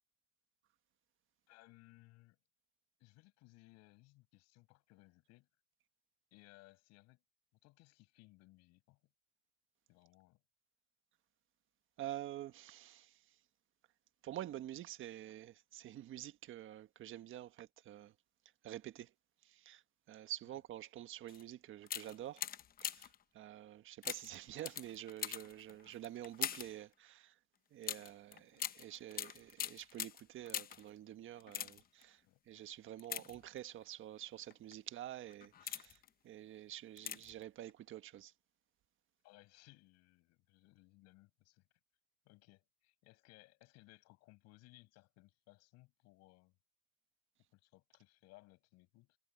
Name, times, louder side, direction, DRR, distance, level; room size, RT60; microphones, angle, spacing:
voice 1, 1.5-2.4 3.0-5.5 6.3-7.2 7.6-9.0 9.9-10.4 20.5-20.6 28.6-28.7 32.2-32.4 39.2-41.7 42.3-46.6 47.5-49.2, left 21 dB, 60° left, 7.1 m, -63 dB
voice 2, 12.0-13.2 14.2-18.1 18.6-19.1 19.4-19.8 20.1-22.4 22.8-23.1 23.3-27.4 27.7-36.0 36.2-38.3, right 13 dB, 45° right, 1.5 m, -48 dB
sound 1, 21.3-21.4 21.8-23.2 24.0-26.8 27.8-30.9 31.4-32.0 33.0-33.8 34.5-34.7 35.3-36.1 37.0-37.4 37.7-37.8, left 10 dB, 30° left, 0.8 m, -43 dB
supercardioid pair, 115°, 29 cm